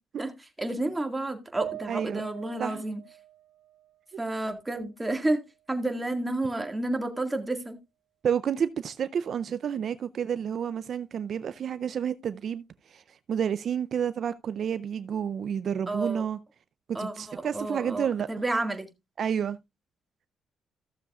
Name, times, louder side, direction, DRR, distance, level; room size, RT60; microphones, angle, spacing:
voice 1, 0.6-3.0 4.2-5.4 5.7-7.8 15.9-16.2 16.9-18.9, right 2 dB, 15° right, 1.8 m, -30 dB
sound 1, 1.6-5.0 5.4-6.4, right 13 dB, 80° right, 2.2 m, -46 dB
voice 2, 1.9-2.3 2.6-2.8 4.1-4.2 8.2-16.4 16.9-18.3 19.2-19.6, right 8 dB, 55° right, 0.4 m, -30 dB
15.0 x 6.9 x 2.3 m
cardioid pair, 90°, 0 cm